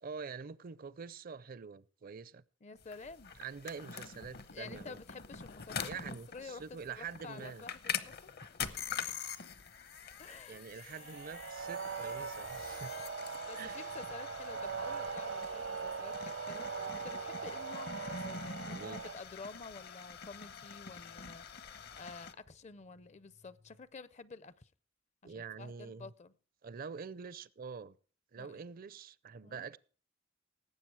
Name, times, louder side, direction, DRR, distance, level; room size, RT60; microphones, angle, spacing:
voice 1, 0.0-2.4 3.4-5.0 5.8-7.6 10.5-12.9 13.2-13.9 18.7-19.0 25.2-26.1 26.6-27.9 28.3-29.8, right 5 dB, 50° right, 0.5 m, -46 dB
voice 2, 2.6-3.3 4.5-8.6 10.2-10.6 13.0-13.2 13.5-24.7 25.2-26.3 28.4-28.6 29.4-29.6, left 4 dB, 35° left, 0.5 m, -50 dB
sound 1, 2.8-22.3, left 6 dB, 55° left, 0.9 m, -45 dB
sound 2, 9.6-23.8, left 2 dB, 80° left, 5.6 m, -68 dB
sound 3, 10.9-19.1, right 5 dB, 70° right, 0.8 m, -41 dB
18.0 x 7.9 x 4.6 m
head